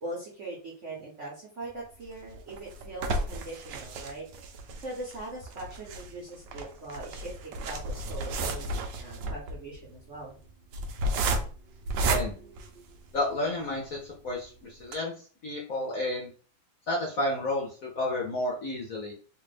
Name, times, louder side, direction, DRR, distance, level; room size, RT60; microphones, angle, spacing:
voice 1, 0.0-4.3 4.8-7.3 7.6-10.4, right 2 dB, 50° right, -4 dB, 1.0 m, -41 dB
sound 1, 2.0-13.4 13.9-14.0 14.3-14.4 14.8-14.9, right 2 dB, 75° right, 1.1 m, -33 dB
voice 2, 12.0-12.3 13.1-15.1 15.4-16.3 16.9-19.1, left 1 dB, 55° left, -3 dB, 1.0 m, -31 dB
3.3 x 2.5 x 3.3 m, 0.40 s
omnidirectional pair, 2.3 m